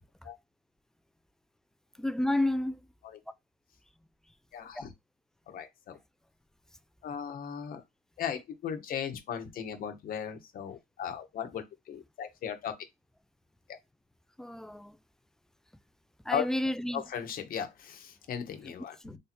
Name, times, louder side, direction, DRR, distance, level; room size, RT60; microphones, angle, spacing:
voice 1, 2.0-2.8 14.4-15.0 16.3-17.0 19.0-19.2, left 1 dB, 5° left, 0.3 m, -30 dB
voice 2, 4.5-4.9 5.5-6.0 7.0-7.8 8.2-12.8 13.7-13.8 16.3-16.4 16.9-19.2, left 8 dB, 60° left, 1.0 m, -37 dB
3.4 x 2.8 x 4.3 m
cardioid pair, 110°, 17 cm